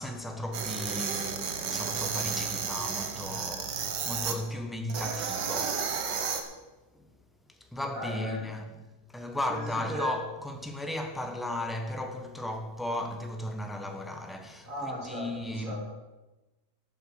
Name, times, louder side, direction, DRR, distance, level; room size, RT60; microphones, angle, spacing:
voice 1, 0.0-6.2 6.9-7.1 7.5-8.7 9.1-15.8, left 1 dB, ahead, 0.9 m, -36 dB
sound 1, 0.5-4.4 4.9-6.4, right 6 dB, 85° right, 1.8 m, -32 dB
voice 2, 7.9-8.5 9.5-10.2 14.6-15.8, equal, 50° right, 3.4 m, -37 dB
11.0 x 7.2 x 7.6 m
omnidirectional pair, 1.8 m